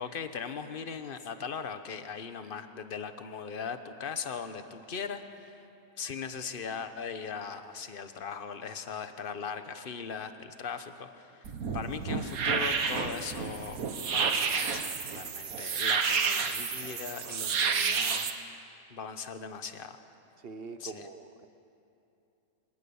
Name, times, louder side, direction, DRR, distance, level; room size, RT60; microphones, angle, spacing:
voice 1, 0.0-5.7 6.0-18.3 18.9-20.0 20.8-21.1, left 6 dB, 40° left, 9 dB, 1.2 m, -39 dB
sound 1, 11.4-18.3, right 6 dB, 80° right, 1.6 m, -30 dB
voice 2, 20.4-21.5, right 4 dB, 45° right, 10 dB, 1.0 m, -43 dB
24.5 x 19.5 x 7.1 m, 2.8 s
omnidirectional pair, 1.5 m